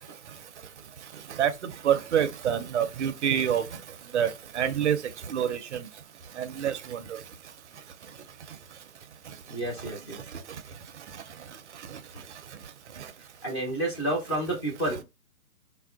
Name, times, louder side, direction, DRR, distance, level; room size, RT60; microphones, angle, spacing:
voice 1, 1.8-3.6 4.1-5.0 5.3-5.9 6.4-7.0, right 9 dB, 50° right, 0.4 m, -26 dB
voice 2, 9.5-10.2 12.1-12.2 13.4-15.0, right 1 dB, 20° left, 0.5 m, -30 dB
4.2 x 2.2 x 2.3 m
hypercardioid pair, 145°, 47 cm